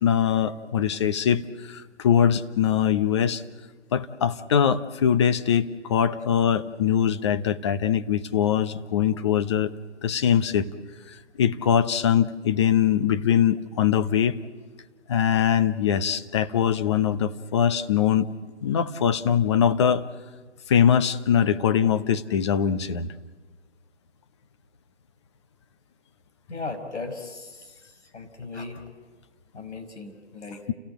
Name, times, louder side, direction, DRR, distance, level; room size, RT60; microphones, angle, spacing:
voice 1, 0.0-3.4 3.9-9.8 10.0-10.7 11.1-14.4 15.1-18.3 18.6-20.0 20.7-23.1, left 8 dB, 25° left, 11 dB, 0.8 m, -22 dB
voice 2, 26.5-27.8 28.1-28.8 29.5-30.6, left 3 dB, 70° left, 5 dB, 5.2 m, -37 dB
29.5 x 17.5 x 9.3 m, 1.3 s
figure-of-eight pair, 145°, 35 cm